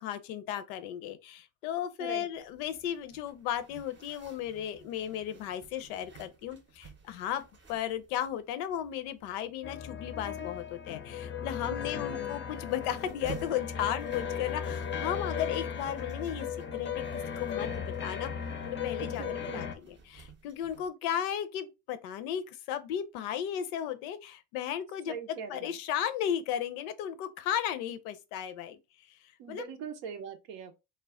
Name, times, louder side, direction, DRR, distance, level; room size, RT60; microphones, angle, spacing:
voice 1, 0.0-18.3 18.7-28.8 29.1-29.2 29.5-29.6, left 10 dB, 75° left, 0.5 m, -35 dB
Zipper (clothing), 2.3-20.9, right 6 dB, 25° right, 0.6 m, -53 dB
sound 1, 9.6-19.8, left 7 dB, 25° left, 0.5 m, -36 dB
voice 2, 11.7-12.2 19.0-19.6 25.1-25.7 29.4-30.7, right 6 dB, 75° right, 0.6 m, -42 dB
2.2 x 2.1 x 3.4 m
hypercardioid pair, 65°, 44 cm